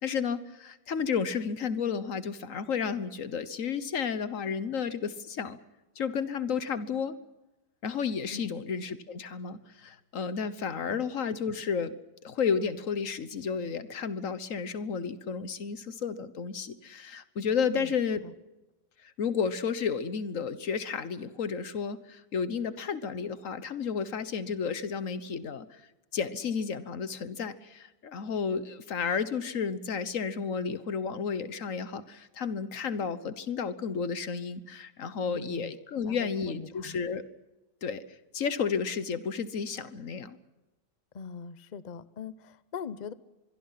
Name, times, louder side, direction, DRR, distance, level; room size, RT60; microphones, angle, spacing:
voice 1, 0.0-5.6 6.0-7.2 7.8-12.0 12.2-18.2 19.2-25.8 26.1-37.2 37.8-38.0 38.3-40.4, left 6 dB, 50° left, 13 dB, 1.4 m, -32 dB
voice 2, 8.3-8.6 10.9-11.0 17.7-17.9 18.2-18.3 35.3-37.0 41.1-43.1, left 6 dB, 75° left, 15 dB, 0.4 m, -42 dB
25.0 x 22.5 x 5.8 m, 1.0 s
omnidirectional pair, 2.0 m